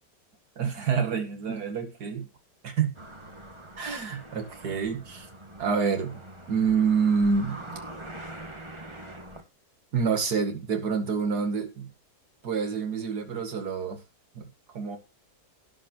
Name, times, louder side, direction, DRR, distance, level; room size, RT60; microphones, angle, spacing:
voice 1, 0.6-2.3 2.6-3.0 3.8-5.3 5.6-6.2 6.5-7.7 9.9-11.9 12.4-14.0 14.4-14.5 14.7-15.0, right 5 dB, 70° right, 2.6 m, -27 dB
sound 1, 3.0-9.4, right 1 dB, 15° right, 1.7 m, -44 dB
13.0 x 11.0 x 3.0 m
omnidirectional pair, 1.8 m